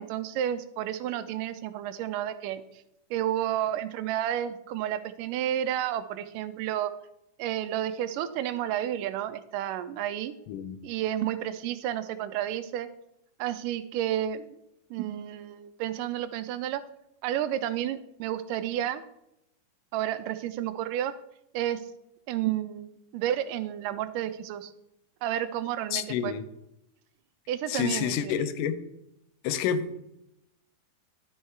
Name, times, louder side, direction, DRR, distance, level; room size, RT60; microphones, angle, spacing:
voice 1, 0.0-2.6 3.1-6.9 7.4-10.3 10.8-12.9 13.4-14.6 14.9-16.8 17.2-19.0 19.9-21.1 21.5-21.8 22.3-24.7 25.2-26.3 27.5-28.3, right 11 dB, 85° right, 2.2 m, -31 dB
voice 2, 10.5-10.8 25.9-26.4 27.7-28.8 29.4-30.0, left 8 dB, 85° left, 2.2 m, -29 dB
12.0 x 5.5 x 4.5 m
omnidirectional pair, 3.8 m